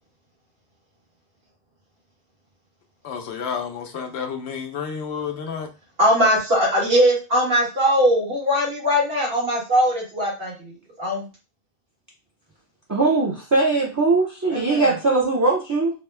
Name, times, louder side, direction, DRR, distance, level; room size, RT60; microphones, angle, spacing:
voice 1, 3.0-5.7, left 6 dB, 90° left, 0.9 m, -30 dB
voice 2, 6.0-10.5 11.0-11.3 14.5-14.9, equal, 65° right, 1.9 m, -20 dB
voice 3, 12.9-15.9, right 3 dB, 20° right, 0.6 m, -20 dB
3.6 x 2.2 x 3.3 m
omnidirectional pair, 1.0 m